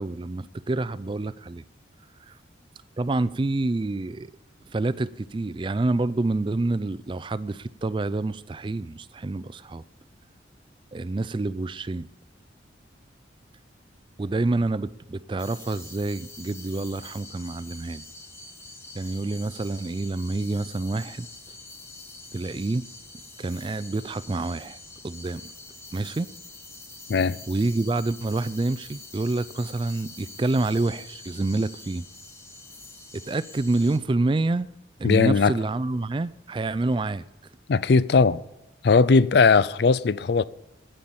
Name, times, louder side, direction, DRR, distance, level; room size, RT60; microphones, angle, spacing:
voice 1, 0.0-1.6 2.3-2.4 3.0-4.3 4.7-9.8 10.9-12.1 14.2-18.0 18.9-21.3 22.3-22.9 23.4-24.8 25.0-25.5 25.9-26.3 27.5-32.0 33.1-34.7 35.0-37.2, right 2 dB, 25° right, 0.3 m, -27 dB
sound 1, 15.4-34.0, left 3 dB, 15° left, 1.0 m, -45 dB
voice 2, 27.1-27.4 35.0-35.5 37.7-38.4 38.8-40.4, left 4 dB, 55° left, 0.4 m, -19 dB
9.5 x 9.0 x 8.6 m
head